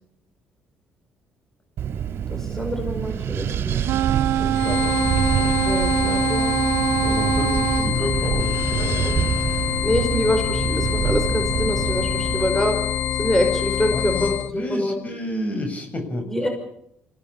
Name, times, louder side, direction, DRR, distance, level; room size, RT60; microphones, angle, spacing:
Wind, 1.8-12.5, right 9 dB, 65° right, 2.7 m, -27 dB
voice 1, 2.3-3.9 5.6-6.5 8.8-9.2 9.8-12.8 13.1-15.0 16.2-16.5, left 1 dB, 10° left, 4 dB, 5.4 m, -25 dB
sound 1, 3.8-7.9, right 11 dB, 80° right, 1.1 m, -24 dB
voice 2, 4.4-4.9 7.0-9.1 13.9-16.3, left 1 dB, 35° left, 6 dB, 7.0 m, -29 dB
sound 2, 4.5-14.5, left 10 dB, 60° left, 1.4 m, -25 dB
25.5 x 16.5 x 8.8 m, 0.74 s
cardioid pair, 90°, 4 cm